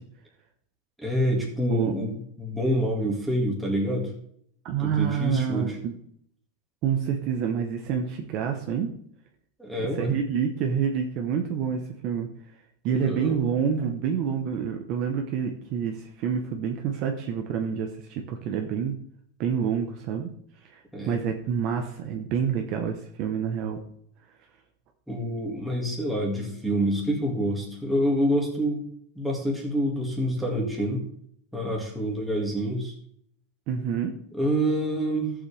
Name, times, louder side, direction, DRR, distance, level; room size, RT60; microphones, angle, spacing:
voice 1, 1.0-2.1 2.4-4.1 4.8-5.8 9.6-10.1 12.9-13.4 20.9-21.2 25.1-28.8 29.2-31.1 31.5-32.9 34.3-35.3, equal, ahead, -3 dB, 2.1 m, -27 dB
voice 2, 4.6-6.0 6.8-8.9 10.0-12.3 12.8-18.9 19.4-20.3 20.7-20.8 21.1-23.8 33.7-34.1, right 7 dB, 35° right, 3 dB, 1.0 m, -27 dB
14.5 x 7.4 x 3.4 m, 0.68 s
supercardioid pair, 175°, 0 cm